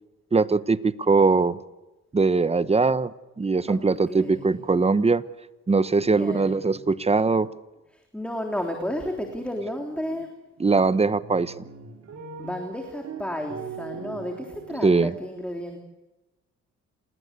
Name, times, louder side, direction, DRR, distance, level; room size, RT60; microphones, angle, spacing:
voice 1, 0.3-1.6 2.1-5.2 5.7-7.5 10.6-11.6 14.8-15.1, right 4 dB, 20° right, 15 dB, 1.0 m, -21 dB
voice 2, 3.7-4.6 6.0-6.9 7.9-10.3 12.4-15.8, left 1 dB, 5° left, 2 dB, 3.3 m, -33 dB
sound 1, 8.5-8.6 8.9-10.2 10.6-15.1, right 6 dB, 55° right, 4.7 m, -42 dB
28.0 x 18.5 x 8.3 m, 1.1 s
cardioid pair, 90°, 30 cm